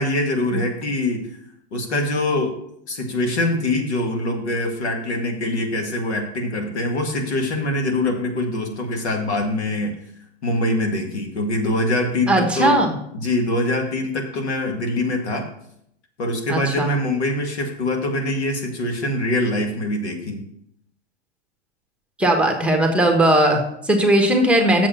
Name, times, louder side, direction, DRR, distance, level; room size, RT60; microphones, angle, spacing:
voice 1, 0.0-1.4 1.7-2.6 2.9-10.0 10.4-12.8 13.1-15.5 16.2-20.4, left 1 dB, 90° left, 3 dB, 2.1 m, -23 dB
voice 2, 12.3-13.0 16.5-16.9 22.2-24.9, right 1 dB, 5° right, 3 dB, 1.1 m, -18 dB
7.1 x 5.2 x 7.0 m, 0.73 s
hypercardioid pair, 135°, 33 cm